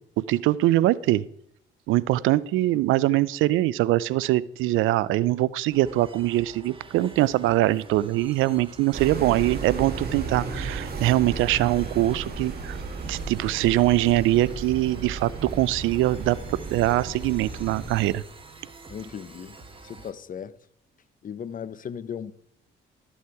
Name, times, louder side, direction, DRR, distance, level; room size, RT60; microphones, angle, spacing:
voice 1, 0.2-1.2 1.9-12.8 13.1-18.2, right 16 dB, 90° right, 0.4 m, -23 dB
sound 1, 5.7-20.1, right 3 dB, 25° right, 1.6 m, -47 dB
sound 2, 8.9-18.1, right 4 dB, 50° right, 2.0 m, -34 dB
voice 2, 18.9-20.6 21.2-22.3, left 7 dB, 45° left, 0.6 m, -37 dB
13.0 x 7.1 x 4.7 m
cardioid pair, 90°, 20 cm